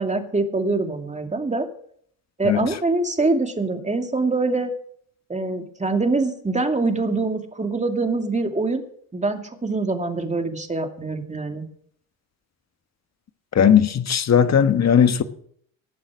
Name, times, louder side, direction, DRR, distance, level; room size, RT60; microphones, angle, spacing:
voice 1, 0.0-1.7 2.4-4.7 5.3-8.8 9.1-11.7, right 3 dB, 15° right, 2.5 m, -24 dB
voice 2, 13.5-15.2, left 8 dB, 40° left, 1.4 m, -17 dB
18.5 x 7.4 x 6.3 m
supercardioid pair, 70°, 41 cm